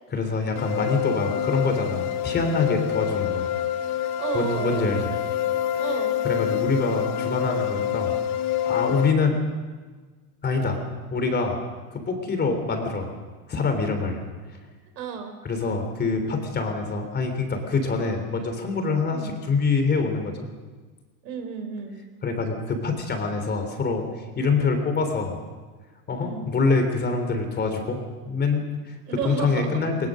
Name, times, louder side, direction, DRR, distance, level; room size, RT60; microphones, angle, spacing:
voice 1, 0.1-3.5 4.3-5.1 6.2-8.2 8.7-9.4 10.4-10.8 11.1-11.6 11.9-13.1 13.5-14.2 15.4-20.5 22.2-24.1 24.4-25.4 26.1-28.0 28.3-28.9 29.2-30.1, left 4 dB, 20° left, 6 dB, 3.4 m, -25 dB
sound 1, 0.6-9.1, left 11 dB, 60° left, 1.8 m, -27 dB
voice 2, 1.5-1.8 4.2-4.9 5.8-6.1 14.9-15.3 19.1-19.4 21.2-22.0 26.2-26.5 29.0-29.8, right 6 dB, 85° right, 6 dB, 4.6 m, -32 dB
21.0 x 21.0 x 6.4 m, 1.4 s
supercardioid pair, 135°, 48 cm